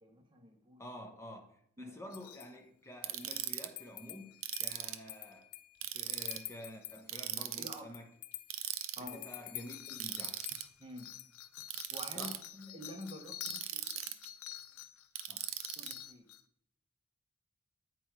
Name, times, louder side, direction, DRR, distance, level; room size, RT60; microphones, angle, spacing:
voice 1, 0.0-0.8 1.8-2.0 4.8-4.9 7.4-7.9 9.0-9.2 10.8-11.1 11.9-13.9 15.8-16.2, equal, 20° right, 0.8 m, -48 dB
voice 2, 0.8-5.5 5.9-8.2 9.0-10.4 12.1-12.4 15.3-15.5, equal, 10° left, 0.8 m, -49 dB
sound 1, 2.1-2.5 3.2-7.0 7.8-16.4, left 12 dB, 80° left, 0.5 m, -48 dB
Ratchet pawl, 3.0-3.7 4.4-5.1 5.8-6.4 7.1-7.8 8.5-9.0 10.0-10.6 11.7-12.4 13.4-14.3 15.2-15.9, right 12 dB, 60° right, 0.6 m, -39 dB
8.5 x 4.6 x 4.4 m
head